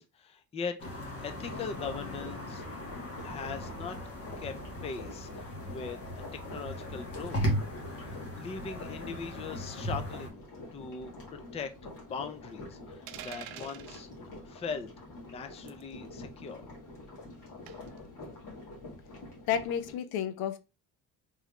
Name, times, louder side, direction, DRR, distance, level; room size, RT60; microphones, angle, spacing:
voice 1, 0.0-2.7 3.2-4.0 4.4-4.5 4.8-6.2 6.5-7.4 7.9-10.4 10.7-14.1 14.4-16.7, left 5 dB, 20° left, 0.4 m, -40 dB
sound 1, 0.8-10.3, equal, 40° left, 1.4 m, -38 dB
sound 2, 1.3-19.9, left 2 dB, 60° left, 2.2 m, -46 dB
sound 3, 13.1-14.0 15.7-15.9 17.7-18.0, right 12 dB, 80° right, 0.5 m, -45 dB
voice 2, 19.5-20.6, left 9 dB, 85° left, 0.7 m, -31 dB
3.7 x 3.2 x 3.1 m
cardioid pair, 155°, 36 cm